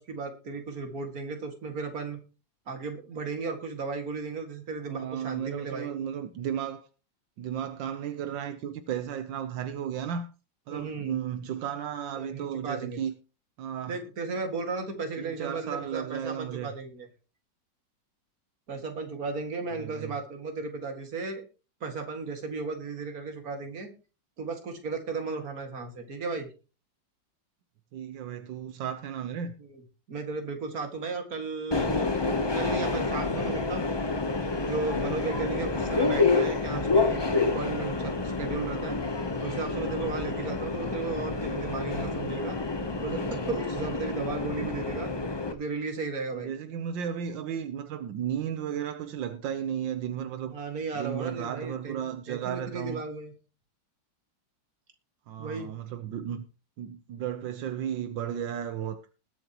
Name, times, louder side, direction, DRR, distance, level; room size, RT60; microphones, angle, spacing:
voice 1, 0.0-2.2 2.7-5.9 10.7-11.2 12.2-13.0 13.9-17.1 18.7-21.4 21.8-23.9 24.4-26.5 29.6-29.8 30.1-34.0 34.6-39.0 39.4-42.6 43.0-45.1 45.5-46.5 50.5-53.3 55.4-55.7, right 4 dB, 50° right, 2.5 m, -35 dB
voice 2, 4.8-6.9 7.4-10.3 10.7-13.1 13.6-14.0 15.2-16.7 19.7-20.2 27.9-29.5 40.7-40.9 46.3-50.5 50.9-53.0 55.3-56.5 56.8-59.0, right 9 dB, 80° right, 1.5 m, -34 dB
Subway metro underground, 31.7-45.5, left 3 dB, 35° left, 0.4 m, -28 dB
20.5 x 8.0 x 3.0 m
omnidirectional pair, 2.0 m